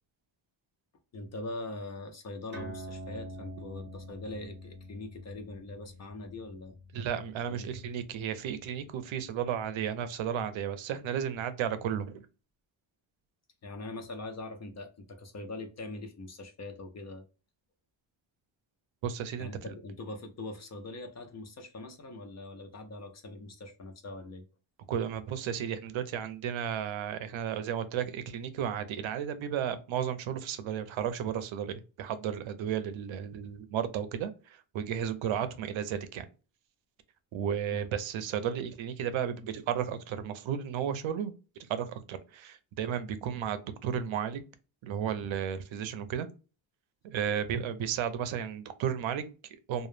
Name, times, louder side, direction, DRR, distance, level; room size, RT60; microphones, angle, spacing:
voice 1, 1.1-6.8 7.5-7.7 13.6-17.3 19.4-24.4 37.7-37.8, left 2 dB, 35° left, 0.4 m, -42 dB
sound 1, 2.5-9.4, equal, 25° right, 0.7 m, -47 dB
voice 2, 6.9-12.2 19.0-19.7 24.9-36.3 37.3-41.3 41.6-44.4 44.8-46.3 47.0-49.9, right 8 dB, 85° right, 0.6 m, -33 dB
2.2 x 2.0 x 3.0 m
wide cardioid pair, 155°, 46 cm